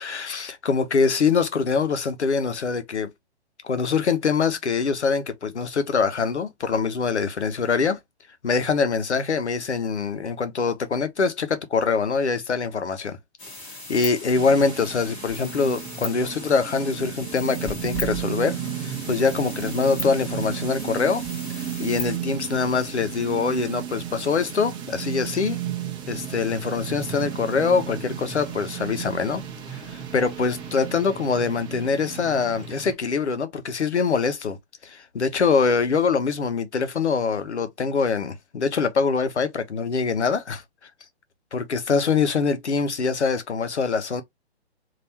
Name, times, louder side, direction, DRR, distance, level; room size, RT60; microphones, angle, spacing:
voice 1, 0.0-3.1 3.6-8.0 8.4-13.2 13.9-18.6 18.8-21.2 21.6-25.6 26.1-29.4 29.7-34.6 34.8-40.6 41.5-44.2, left 5 dB, 90° left, 1.0 m, -24 dB
sound 1, 13.4-22.2, left 2 dB, 20° left, 1.5 m, -38 dB
sound 2, 14.3-32.9, right 9 dB, 15° right, 0.7 m, -34 dB
3.5 x 2.8 x 2.8 m
hypercardioid pair, 135°, 33 cm